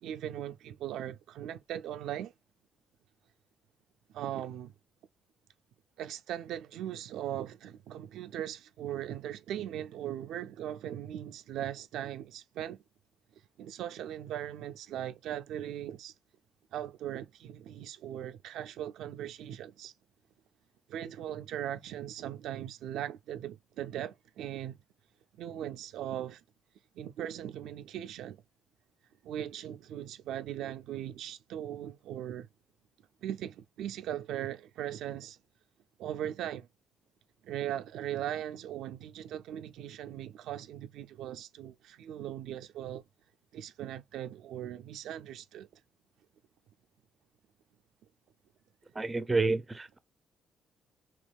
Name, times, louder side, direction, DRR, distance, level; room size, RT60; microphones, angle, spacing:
voice 1, 0.0-2.3 4.1-4.7 6.0-12.8 13.6-16.1 16.7-19.9 20.9-24.8 25.4-26.4 26.9-28.4 29.2-32.5 33.2-35.4 36.0-36.7 37.4-43.0 43.5-45.7, right 11 dB, 85° right, 0.3 m, -39 dB
voice 2, 49.0-50.0, right 3 dB, 20° right, 0.4 m, -29 dB
3.5 x 2.9 x 2.3 m
cardioid pair, 90°, 0 cm